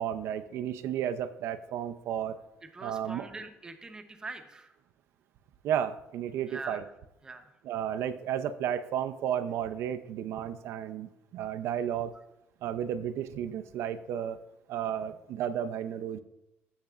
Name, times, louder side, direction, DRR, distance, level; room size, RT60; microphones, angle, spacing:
voice 1, 0.0-2.4 2.8-3.3 5.6-6.8 7.6-12.1 12.6-14.4 14.7-16.2, right 9 dB, 65° right, 11 dB, 0.5 m, -33 dB
voice 2, 2.7-4.7 6.5-6.8 7.2-7.4, right 3 dB, 15° right, 6 dB, 0.8 m, -43 dB
15.5 x 6.5 x 2.4 m, 0.90 s
cardioid pair, 170°, 5 cm